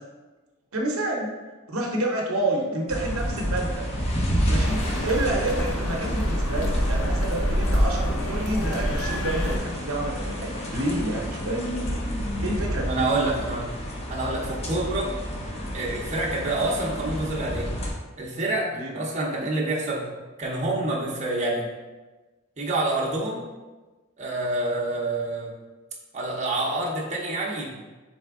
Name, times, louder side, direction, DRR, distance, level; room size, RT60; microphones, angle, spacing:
voice 1, 0.7-1.3 1.7-3.8 4.5-11.7 12.4-13.1 18.7-19.1, right 1 dB, 75° right, 0 dB, 0.7 m, -29 dB
sound 1, 2.9-17.9, equal, 30° left, 0.6 m, -30 dB
sound 2, 4.6-9.6, equal, 85° left, 0.7 m, -26 dB
voice 2, 12.9-13.7 14.1-15.1 15.7-17.7 18.2-20.1 20.4-21.7 22.6-23.4 24.2-25.5 26.1-27.7, right 2 dB, 35° right, -4 dB, 0.7 m, -27 dB
4.2 x 3.3 x 3.5 m, 1.2 s
head